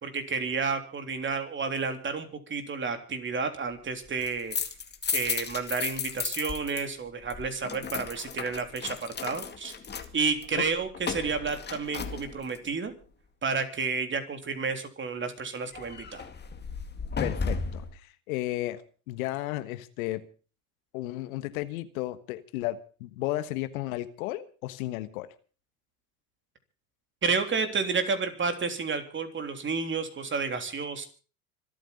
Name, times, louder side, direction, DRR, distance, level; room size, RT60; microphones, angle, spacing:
voice 1, 0.0-4.6 5.1-9.8 10.1-12.9 13.4-16.2 27.2-31.1, right 5 dB, 25° right, 7 dB, 3.5 m, -31 dB
sound 1, 4.1-6.8 7.1-12.7 15.7-18.0, left 5 dB, 20° left, 2.2 m, -35 dB
voice 2, 17.2-20.2 20.9-25.3, left 16 dB, 70° left, 13 dB, 1.5 m, -34 dB
26.0 x 9.0 x 5.4 m, 0.38 s
hypercardioid pair, 90°, 44 cm